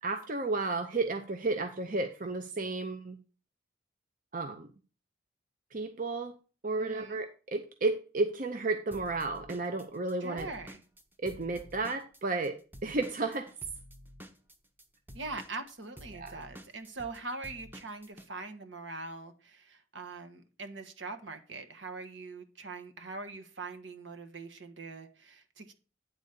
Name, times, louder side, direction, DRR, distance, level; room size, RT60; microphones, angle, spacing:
voice 1, 0.0-3.2 4.3-4.7 5.7-6.3 6.6-10.5 11.2-13.5 16.1-16.4, right 3 dB, 45° right, 7 dB, 0.6 m, -32 dB
voice 2, 6.8-7.2 10.2-10.8 15.1-25.7, right 3 dB, 70° right, 8 dB, 1.3 m, -42 dB
Drum kit / Drum, 8.9-12.5 12.7-18.3, equal, 10° right, 0.7 m, -50 dB
9.2 x 4.1 x 6.6 m, 0.36 s
head